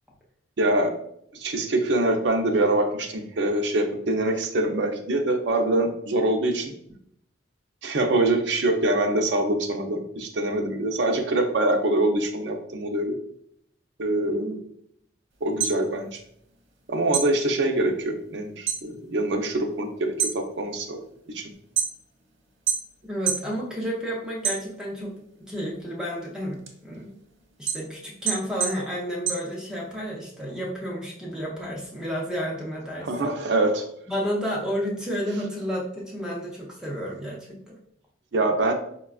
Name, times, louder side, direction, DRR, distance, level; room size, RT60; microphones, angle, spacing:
voice 1, 0.6-0.9 1.3-6.7 7.8-13.2 14.0-14.6 15.4-16.2 16.9-21.0 21.3-21.5 33.0-33.9 38.3-38.7, right 2 dB, 65° right, 4 dB, 0.5 m, -24 dB
voice 2, 14.3-14.6 23.0-25.1 25.4-27.1 27.6-33.4 34.1-37.8, equal, 5° right, -3 dB, 0.5 m, -31 dB
sound 1, 15.4-16.8 17.1-18.9 19.2-19.7 20.0-22.2 22.7-23.5 23.9-25.1 25.5-30.1, right 7 dB, 80° right, 0.9 m, -29 dB
4.8 x 2.2 x 2.3 m, 0.71 s
head